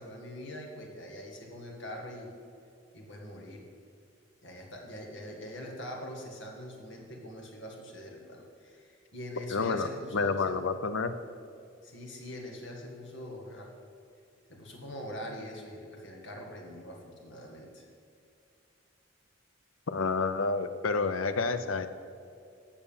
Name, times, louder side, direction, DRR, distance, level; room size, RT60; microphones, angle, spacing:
voice 1, 0.0-2.3 2.9-3.6 4.4-10.4 11.8-13.7 14.5-17.9, equal, 65° left, 0 dB, 1.9 m, -43 dB
voice 2, 9.5-9.9 10.1-11.1 19.9-21.9, left 4 dB, 90° left, 11 dB, 0.6 m, -29 dB
9.0 x 6.9 x 7.2 m, 2.5 s
head